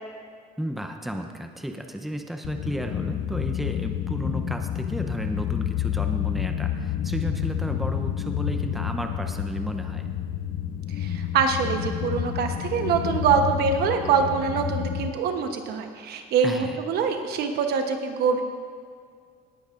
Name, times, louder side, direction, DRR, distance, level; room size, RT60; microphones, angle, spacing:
voice 1, 0.6-10.1 16.4-16.8, equal, ahead, 5 dB, 0.7 m, -33 dB
sound 1, 2.4-15.1, left 10 dB, 55° left, 0.6 m, -29 dB
voice 2, 11.0-18.4, right 6 dB, 70° right, 5 dB, 1.1 m, -24 dB
19.0 x 9.4 x 2.6 m, 2.1 s
cardioid pair, 110°, 17 cm